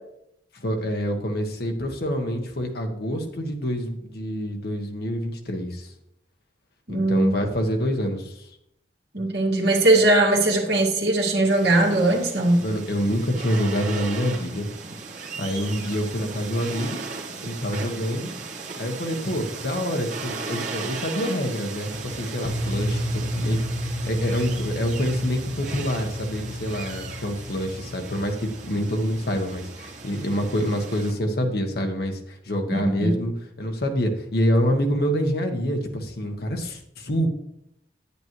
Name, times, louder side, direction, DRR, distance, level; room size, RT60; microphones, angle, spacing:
voice 1, 0.5-5.9 6.9-8.5 12.6-14.7 15.4-17.0 17.4-18.3 18.8-23.6 23.8-33.3 33.6-37.3, equal, 60° left, 4 dB, 1.2 m, -26 dB
voice 2, 6.9-7.3 9.1-12.7 32.7-33.1, right 2 dB, 60° right, -2 dB, 1.9 m, -20 dB
sound 1, 11.5-31.1, right 4 dB, 45° right, 1.5 m, -37 dB
sound 2, 22.4-30.6, equal, 30° left, 0.8 m, -32 dB
9.2 x 8.4 x 3.1 m, 0.76 s
head